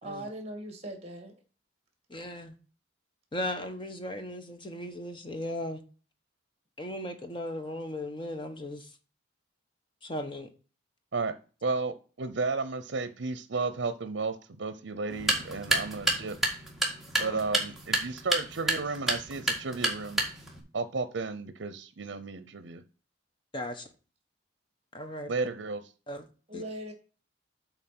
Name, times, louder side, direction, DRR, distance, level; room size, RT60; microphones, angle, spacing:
voice 1, 0.0-1.3 26.5-26.9, right 1 dB, 35° right, 2.1 m, -39 dB
voice 2, 2.1-2.6 3.3-5.8 6.8-9.0 10.0-10.5 17.2-17.4 23.5-23.9 24.9-25.3 26.1-26.3 26.5-26.6, left 1 dB, 25° left, 1.1 m, -37 dB
voice 3, 11.6-16.4 17.2-20.2 20.7-22.8 25.3-25.8, right 3 dB, 75° right, 0.7 m, -33 dB
sound 1, 15.1-20.6, right 2 dB, ahead, 1.9 m, -30 dB
8.1 x 4.1 x 5.9 m
head